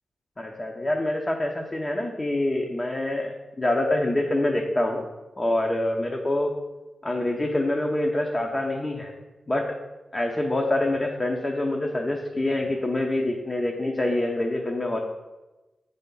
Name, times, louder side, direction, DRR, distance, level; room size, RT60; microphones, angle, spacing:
voice 1, 0.4-5.0 5.4-6.5 7.0-9.1 9.5-9.8 10.1-15.0, left 1 dB, 25° left, 1 dB, 0.7 m, -26 dB
6.5 x 3.5 x 5.4 m, 1.1 s
cardioid pair, 65°, 0 cm